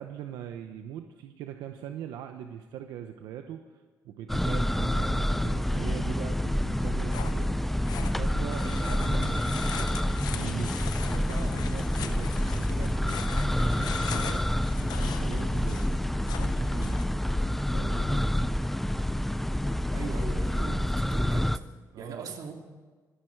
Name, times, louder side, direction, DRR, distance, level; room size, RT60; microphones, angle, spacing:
voice 1, 0.0-10.0 10.3-10.7 11.1-14.4 14.8-15.9 16.4-17.1 17.7-18.2 21.9-22.4, right 9 dB, 90° right, 6 dB, 0.8 m, -41 dB
sound 1, 4.3-21.6, left 1 dB, 5° left, 0.4 m, -28 dB
sound 2, 6.8-17.0, left 10 dB, 75° left, 0.8 m, -41 dB
voice 2, 19.9-21.5 22.0-22.5, right 5 dB, 60° right, 3 dB, 2.5 m, -39 dB
24.0 x 11.0 x 4.6 m, 1.4 s
cardioid pair, 95°, 7 cm